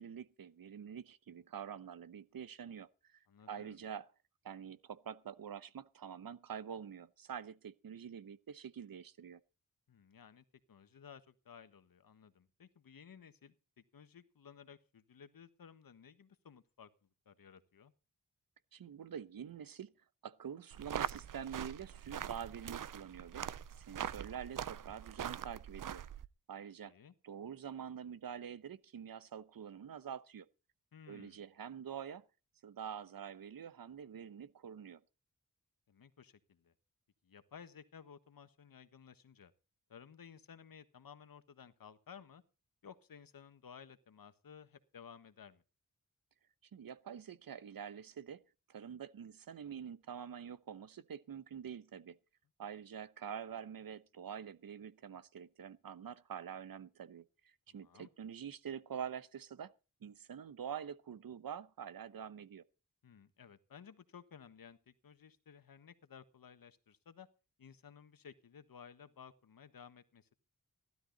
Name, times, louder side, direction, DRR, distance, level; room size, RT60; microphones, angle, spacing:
voice 1, 0.0-4.1 4.4-9.4 18.7-19.9 20.2-23.5 23.8-26.0 26.5-26.9 27.2-30.5 31.1-32.2 32.6-35.0 46.7-48.4 48.7-52.2 52.6-59.7 60.0-62.6, right 8 dB, 90° right, 0.9 m, -46 dB
voice 2, 3.3-3.8 9.9-16.9 17.2-17.9 26.8-27.1 30.9-31.4 35.9-36.7 37.2-39.5 39.9-42.4 42.8-45.6 57.7-58.1 63.0-67.3 67.6-70.3, left 7 dB, 85° left, 1.4 m, -56 dB
sound 1, 20.7-26.3, right 9 dB, 70° right, 0.6 m, -42 dB
16.0 x 12.5 x 4.0 m
wide cardioid pair, 90°, 34 cm